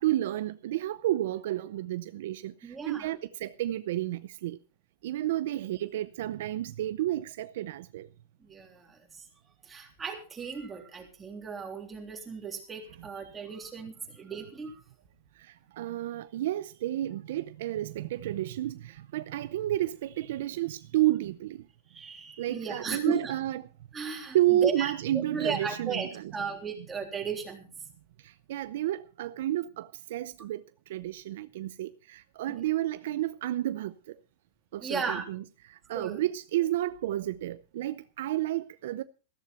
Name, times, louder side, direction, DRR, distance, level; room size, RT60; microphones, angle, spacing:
voice 1, 0.0-2.5 2.8-4.6 5.0-8.1 15.8-21.6 22.4-23.7 24.3-26.3 28.5-30.6 30.9-33.9 34.7-35.4 35.9-39.0, right 14 dB, 65° right, 0.7 m, -31 dB
voice 2, 2.6-3.1 8.4-9.0 9.6-14.8 21.9-23.3 23.9-27.7 32.5-32.6 34.8-35.3 35.9-36.2, right 5 dB, 15° right, 3.3 m, -36 dB
14.5 x 13.5 x 4.3 m
supercardioid pair, 155°, 0 cm